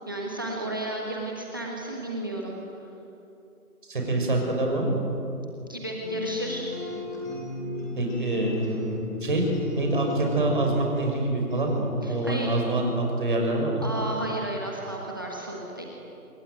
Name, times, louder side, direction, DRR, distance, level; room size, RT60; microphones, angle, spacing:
voice 1, 0.1-2.5 5.7-6.7 12.0-12.5 13.8-15.8, right 1 dB, 15° right, -2 dB, 1.3 m, -33 dB
voice 2, 3.9-5.0 7.9-13.8, right 2 dB, 35° right, 1 dB, 6.0 m, -26 dB
sound 1, 6.0-13.6, left 3 dB, 10° left, 2.7 m, -36 dB
27.5 x 21.5 x 9.2 m, 2.8 s
figure-of-eight pair, 170°, 45 cm